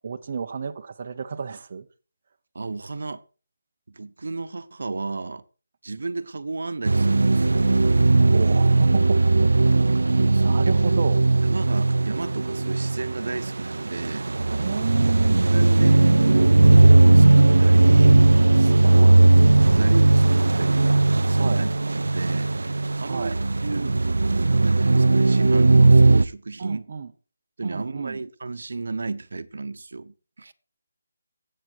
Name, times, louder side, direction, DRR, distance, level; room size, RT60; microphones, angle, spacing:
voice 1, 0.0-1.9 8.3-9.9 10.4-11.2 14.6-15.4 18.5-19.2 21.3-21.6 23.1-23.4 26.6-27.1 27.6-28.2, right 5 dB, 35° right, 0.8 m, -31 dB
voice 2, 2.5-3.2 3.9-5.4 5.8-7.7 10.1-10.7 11.5-14.3 15.5-18.3 18.9-19.1 19.6-20.9 21.3-21.7 22.0-22.5 23.0-24.0 24.6-26.9 27.6-30.5, right 3 dB, 65° right, 1.0 m, -33 dB
sound 1, 6.8-26.3, right 2 dB, 90° right, 0.6 m, -18 dB
14.5 x 8.7 x 4.7 m
hypercardioid pair, 175°, 0 cm